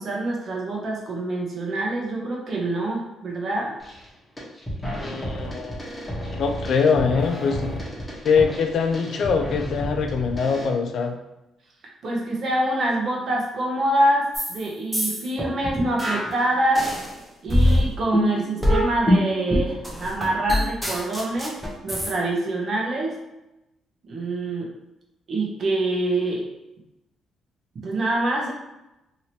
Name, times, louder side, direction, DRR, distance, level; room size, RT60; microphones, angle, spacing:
voice 1, 0.0-3.7 5.1-5.2 12.0-16.9 17.4-23.2 24.0-24.7 25.3-26.5 27.7-28.5, right 1 dB, 55° right, -1 dB, 0.9 m, -25 dB
sound 1, 3.8-4.1 4.4-10.7, equal, 15° left, 1.1 m, -32 dB
voice 2, 5.0-5.8 6.3-7.8 8.2-11.2, left 5 dB, 65° left, 5 dB, 0.4 m, -23 dB
sound 2, 14.3-14.6 14.9-17.1 17.5-22.1, left 1 dB, 5° right, 0.7 m, -23 dB
2.9 x 2.8 x 2.9 m, 0.93 s
cardioid pair, 90°, 0 cm